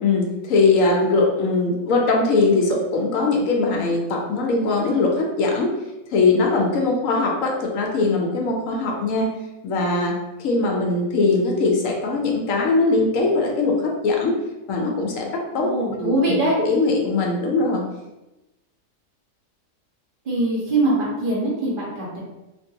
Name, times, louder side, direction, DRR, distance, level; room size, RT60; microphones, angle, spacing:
voice 1, 0.0-5.7 6.1-9.3 9.6-10.1 10.4-13.7 14.0-14.4 14.7-15.3 15.5-15.7 16.0-17.8, left 3 dB, 70° left, 0 dB, 0.9 m, -21 dB
voice 2, 15.5-16.5 20.2-22.2, right 2 dB, 40° right, -6 dB, 1.0 m, -22 dB
2.8 x 2.6 x 2.7 m, 1.0 s
omnidirectional pair, 1.6 m